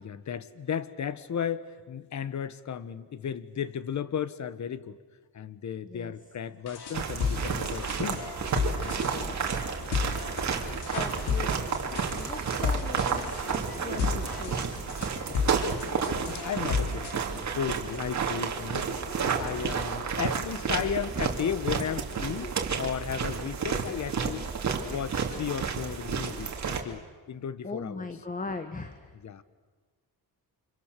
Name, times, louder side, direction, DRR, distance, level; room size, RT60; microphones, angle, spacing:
voice 1, 0.0-5.0 5.3-8.2 8.8-9.3 12.0-12.1 15.1-24.5 24.8-28.1 29.1-29.4, left 8 dB, 45° left, 14 dB, 1.3 m, -35 dB
sound 1, 6.7-17.1, left 5 dB, 85° left, 4.0 m, -33 dB
sound 2, 6.9-26.8, right 6 dB, 45° right, 2.7 m, -31 dB
voice 2, 9.0-9.6 10.9-11.7 12.0-14.9 22.4-22.5 27.6-29.1, left 3 dB, 20° left, 8 dB, 1.4 m, -39 dB
29.5 x 26.0 x 6.9 m, 1.4 s
cardioid pair, 115°, 38 cm